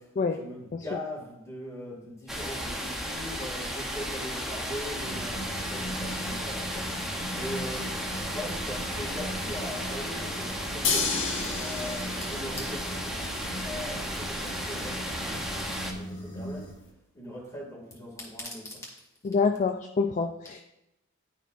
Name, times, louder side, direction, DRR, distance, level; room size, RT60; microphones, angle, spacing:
voice 1, 0.0-11.2 11.5-13.3 13.5-15.6 15.9-16.7 17.1-18.9, left 1 dB, 15° left, -4 dB, 2.3 m, -40 dB
sound 1, 2.3-15.9, equal, ahead, 0.8 m, -34 dB
sound 2, 4.9-16.7, equal, 80° left, 2.2 m, -40 dB
sound 3, 10.8-16.9, left 4 dB, 60° left, 1.3 m, -35 dB
voice 2, 19.2-20.6, left 4 dB, 35° left, 5 dB, 0.4 m, -26 dB
12.0 x 4.5 x 2.5 m, 0.85 s
head